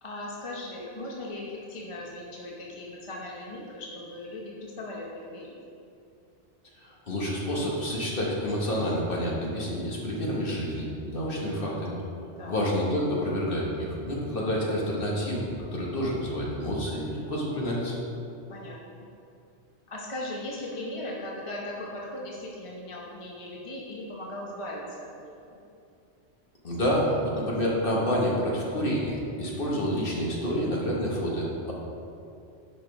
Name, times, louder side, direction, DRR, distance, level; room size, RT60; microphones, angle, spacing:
voice 1, 0.0-5.5 12.4-12.6 18.5-19.1 19.9-25.6, left 1 dB, 30° left, -3 dB, 0.9 m, -38 dB
voice 2, 6.8-12.0 12.4-18.0 26.6-31.7, equal, 50° left, -4 dB, 1.6 m, -28 dB
10.5 x 5.4 x 3.4 m, 2.5 s
omnidirectional pair, 1.2 m